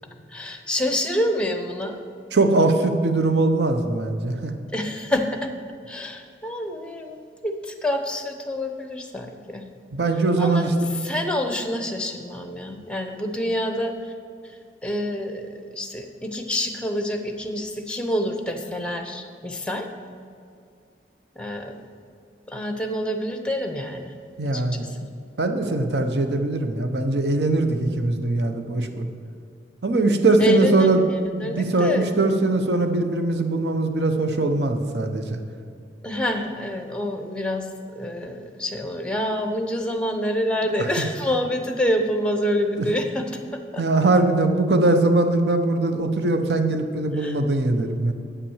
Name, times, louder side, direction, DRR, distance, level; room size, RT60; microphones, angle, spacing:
voice 1, 0.3-2.0 4.7-5.5 5.9-9.7 10.4-14.1 14.4-19.9 21.4-21.8 22.5-24.1 24.5-25.0 30.4-32.2 36.0-43.8 47.1-47.4, equal, 5° left, 6 dB, 0.7 m, -27 dB
voice 2, 2.3-4.5 9.9-10.7 24.4-24.8 25.4-29.1 29.8-31.0 31.4-35.4 43.8-48.1, right 2 dB, 75° right, 6 dB, 0.7 m, -21 dB
8.2 x 5.8 x 7.1 m, 2.4 s
head